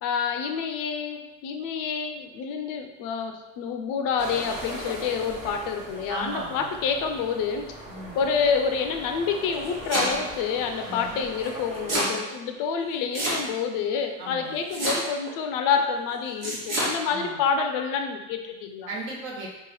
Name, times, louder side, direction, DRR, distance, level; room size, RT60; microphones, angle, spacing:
voice 1, 0.0-7.7 8.1-18.9, left 6 dB, 55° left, 5 dB, 0.6 m, -28 dB
sound 1, 4.2-12.0, right 1 dB, 15° right, 1.1 m, -40 dB
voice 2, 6.1-6.7 7.8-8.2 10.8-11.2 14.2-14.6 17.0-17.4 18.9-19.5, right 2 dB, 60° right, -4 dB, 1.3 m, -36 dB
Domestic sounds home sounds, 9.5-10.4 11.4-12.2 13.1-13.7 14.7-15.3 16.4-16.9, right 1 dB, 80° right, 1.3 m, -27 dB
2.9 x 2.4 x 4.0 m, 1.0 s
figure-of-eight pair, 55°, 39 cm